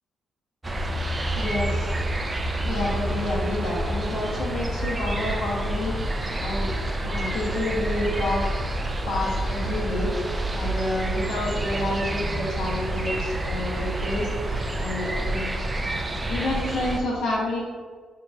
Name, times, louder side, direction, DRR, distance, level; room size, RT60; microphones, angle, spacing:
sound 1, 0.6-17.0, right 1 dB, 25° right, 0.4 m, -28 dB
voice 1, 1.4-1.9 2.6-5.9 6.4-6.7 7.0-8.4 9.0-10.1 10.5-14.3 14.8-15.5 16.3-17.6, left 2 dB, 80° left, -5 dB, 0.9 m, -29 dB
5.9 x 3.0 x 2.3 m, 1.5 s
cardioid pair, 100°, 0 cm